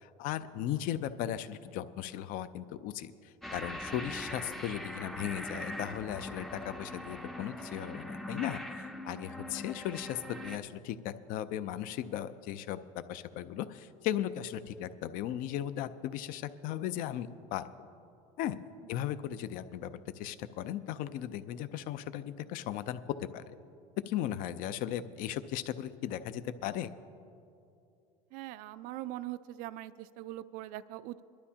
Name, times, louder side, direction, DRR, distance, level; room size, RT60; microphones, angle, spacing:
voice 1, 0.0-17.6 18.4-18.6 18.9-23.4 24.1-26.9, left 11 dB, 60° left, 12 dB, 0.5 m, -37 dB
sound 1, 3.4-10.6, left 1 dB, ahead, 0.5 m, -41 dB
voice 2, 28.3-31.2, right 15 dB, 60° right, 15 dB, 0.4 m, -42 dB
22.0 x 12.0 x 2.9 m, 2.6 s
supercardioid pair, 120°, 16 cm